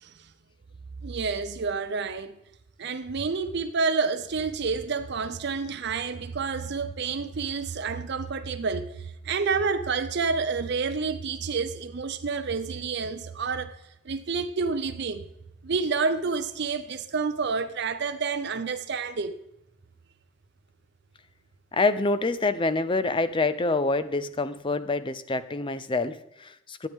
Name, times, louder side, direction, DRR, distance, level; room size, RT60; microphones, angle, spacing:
voice 1, 1.0-2.3 2.8-13.7 14.0-15.3 15.6-19.3, right 4 dB, 50° right, 0.5 m, -29 dB
voice 2, 21.7-26.9, left 3 dB, 25° left, 0.4 m, -26 dB
12.5 x 8.9 x 3.6 m
head